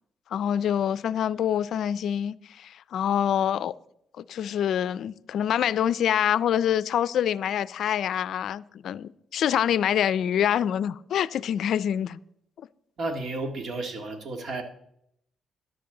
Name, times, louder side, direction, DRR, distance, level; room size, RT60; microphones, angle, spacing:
voice 1, 0.3-3.7 4.2-12.2, left 9 dB, 70° left, 0.4 m, -26 dB
voice 2, 13.0-14.6, right 2 dB, 55° right, 1.9 m, -32 dB
13.5 x 11.0 x 3.9 m
cardioid pair, 90°, 0 cm